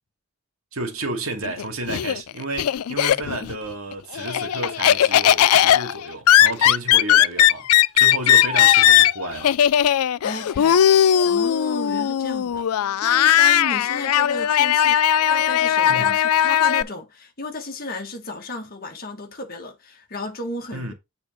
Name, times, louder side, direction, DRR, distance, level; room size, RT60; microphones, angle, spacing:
voice 1, 0.7-7.7 7.9-9.5 15.9-16.1 20.7-20.9, right 2 dB, 75° right, 2.3 m, -31 dB
Laughter, 1.4-3.6 3.9-16.8, left 11 dB, 80° left, 0.4 m, -18 dB
voice 2, 10.2-10.8 11.2-20.9, left 1 dB, 40° left, 1.6 m, -34 dB
7.9 x 4.2 x 5.0 m
head